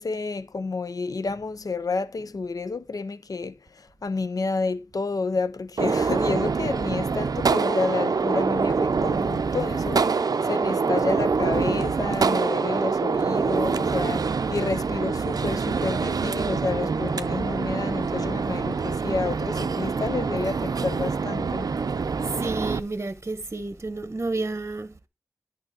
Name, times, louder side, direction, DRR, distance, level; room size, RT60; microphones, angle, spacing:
voice 1, 0.0-3.6 4.0-21.7, left 4 dB, 75° left, 0.6 m, -30 dB
Gunshot gunfire, 5.8-22.8, right 5 dB, 80° right, 0.4 m, -25 dB
voice 2, 22.4-24.9, right 3 dB, 45° right, 0.8 m, -30 dB
10.5 x 3.9 x 6.8 m
wide cardioid pair, 45°, 6 cm